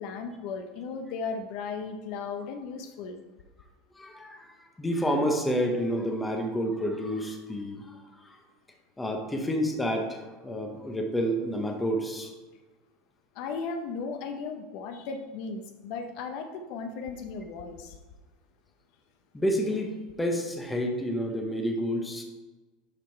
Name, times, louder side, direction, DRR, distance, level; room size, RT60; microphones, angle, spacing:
voice 1, 0.0-3.2 13.3-18.0, left 5 dB, 50° left, 6 dB, 0.7 m, -36 dB
voice 2, 4.0-7.8 8.2-8.4 9.0-12.3 19.3-22.2, equal, 5° left, 2 dB, 0.9 m, -29 dB
11.5 x 3.8 x 4.5 m, 1.2 s
supercardioid pair, 170°, 0 cm